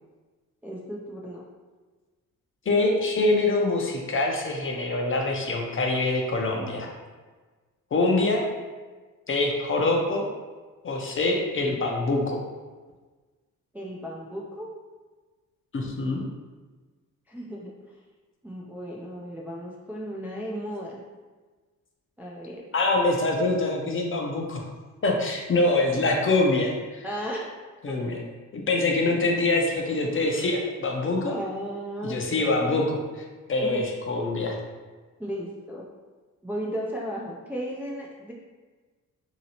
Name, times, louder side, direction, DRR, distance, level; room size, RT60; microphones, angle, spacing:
voice 1, 0.6-1.4 13.7-14.7 17.3-17.7 18.4-21.0 22.2-22.6 27.0-27.5 27.9-28.0 31.2-32.8 33.6-33.8 35.2-35.8 36.4-38.3, equal, 5° right, -4 dB, 0.3 m, -35 dB
voice 2, 2.7-6.9 7.9-8.4 9.3-10.3 10.8-12.4 15.7-16.2 22.7-24.6 25.0-27.0 27.8-28.2 28.5-31.4 32.0-33.0 33.5-34.6, left 2 dB, 40° left, 1 dB, 0.6 m, -24 dB
2.8 x 2.8 x 2.8 m, 1.3 s
cardioid pair, 90°, 33 cm